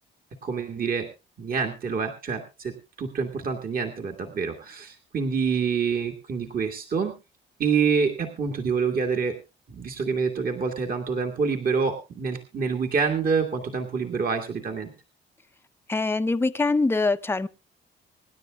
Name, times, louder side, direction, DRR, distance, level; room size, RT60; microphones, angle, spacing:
voice 1, 0.4-1.1 1.4-7.1 7.6-9.4 9.7-14.9, right 5 dB, 45° right, 2.0 m, -27 dB
voice 2, 15.9-17.5, left 3 dB, 10° left, 0.7 m, -23 dB
25.5 x 10.5 x 2.4 m
cardioid pair, 90°, 20 cm